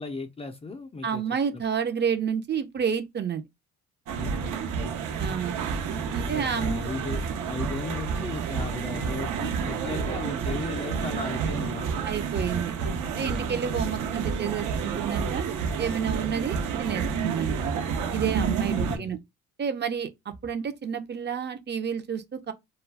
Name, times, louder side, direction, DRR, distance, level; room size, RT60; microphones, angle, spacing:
voice 1, 0.0-1.2 1.5-1.6 4.2-4.9 6.1-7.2 7.5-12.0 18.8-19.2, left 3 dB, 20° left, 0.5 m, -36 dB
voice 2, 1.0-3.4 5.2-5.5 6.1-6.9 12.0-12.7 13.2-15.4 15.8-17.5 18.1-19.2 19.6-22.5, right 7 dB, 35° right, 0.6 m, -30 dB
sound 1, 4.1-19.0, right 6 dB, 65° right, 0.8 m, -29 dB
2.3 x 2.2 x 3.3 m
supercardioid pair, 80°, 32 cm